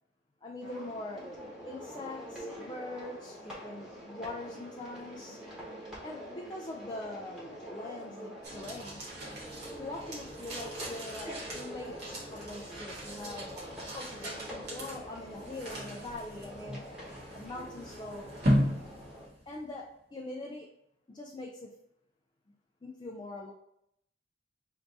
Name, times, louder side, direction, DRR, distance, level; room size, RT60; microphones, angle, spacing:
voice 1, 0.4-1.3 1.7-5.4 6.0-9.0 9.8-13.6 13.9-16.8 17.3-18.3 19.5-20.7 21.1-21.7 22.8-23.5, left 2 dB, 25° left, -1 dB, 0.4 m, -43 dB
sound 1, 0.6-19.3, equal, 5° right, 1.1 m, -45 dB
sound 2, 8.4-19.8, equal, 55° right, 1.2 m, -36 dB
3.4 x 2.7 x 3.9 m, 0.76 s
head